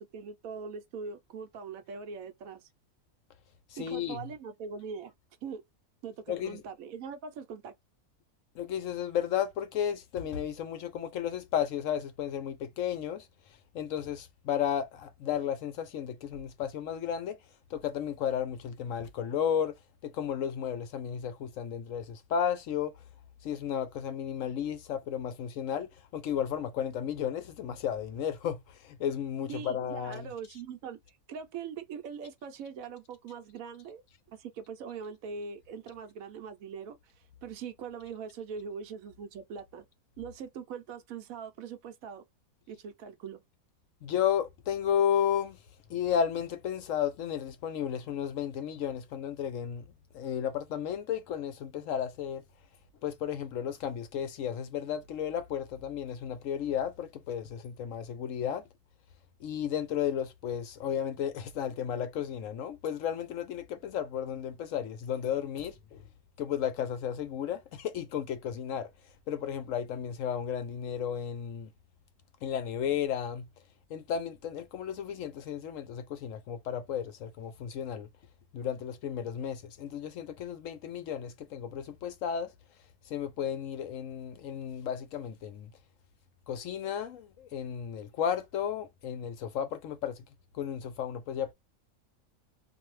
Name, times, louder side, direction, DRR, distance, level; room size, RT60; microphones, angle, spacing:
voice 1, 0.0-2.7 3.8-5.1 5.4-5.6 6.0-7.7 29.5-39.8 40.2-42.2 42.7-43.4, right 6 dB, 75° right, 1.0 m, -42 dB
voice 2, 3.7-4.2 6.3-6.6 8.6-13.3 13.7-17.4 17.7-19.7 20.0-22.9 23.4-30.3 44.0-45.6 45.9-49.8 50.1-52.4 53.0-58.6 59.4-66.0 66.4-68.9 69.3-71.7 72.4-73.5 73.9-78.1 78.5-82.5 83.1-85.7 86.5-90.2 90.5-91.5, left 9 dB, 70° left, 0.9 m, -33 dB
2.6 x 2.1 x 3.1 m
omnidirectional pair, 1.5 m